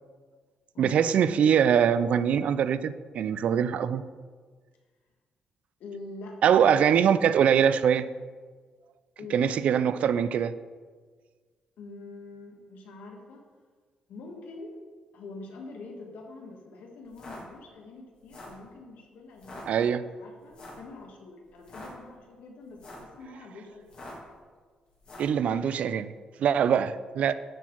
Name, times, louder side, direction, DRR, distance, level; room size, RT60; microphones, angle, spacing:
voice 1, 0.8-4.0 6.4-8.1 9.3-10.5 19.7-20.0 25.2-26.1 26.4-27.3, right 8 dB, 55° right, 14 dB, 0.3 m, -23 dB
voice 2, 5.8-6.7 9.2-9.6 11.8-13.4 14.1-14.8 15.1-19.9 20.2-24.0, left 3 dB, 80° left, 1 dB, 1.5 m, -45 dB
sound 1, 17.0-17.4 18.2-18.6 19.3-19.6 20.5-20.9 21.5-21.9 22.7-23.1 23.8-24.3 25.0-25.4, left 1 dB, 40° left, 2.0 m, -44 dB
11.5 x 4.4 x 4.5 m, 1.5 s
cardioid pair, 160°, 3 cm